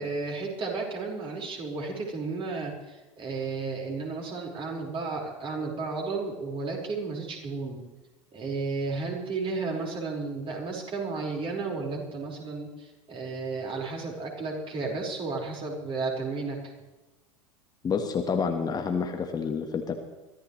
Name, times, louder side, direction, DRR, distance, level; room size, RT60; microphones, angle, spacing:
voice 1, 0.0-7.8 8.3-16.7, right 4 dB, 30° right, -1 dB, 5.2 m, -33 dB
voice 2, 17.8-19.9, left 5 dB, 25° left, 5 dB, 1.5 m, -28 dB
24.0 x 14.5 x 3.3 m, 1.1 s
figure-of-eight pair, 85°, 17 cm